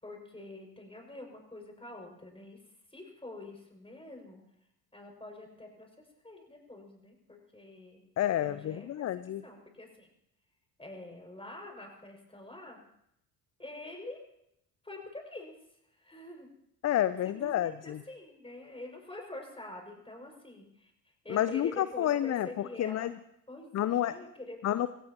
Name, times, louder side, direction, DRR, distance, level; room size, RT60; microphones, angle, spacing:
voice 1, 0.0-2.6 2.9-4.4 4.9-5.9 6.2-8.0 8.4-9.1 9.4-10.1 10.8-12.8 13.6-14.2 14.8-15.5 16.0-16.5 17.2-20.9 21.2-23.1 23.5-24.6, left 2 dB, 10° left, 1 dB, 6.3 m, -46 dB
voice 2, 8.2-9.4 16.8-18.0 21.3-23.1 23.7-24.2 24.6-24.9, left 12 dB, 35° left, 15 dB, 0.6 m, -29 dB
24.5 x 17.0 x 3.0 m, 0.76 s
figure-of-eight pair, 50°, 47 cm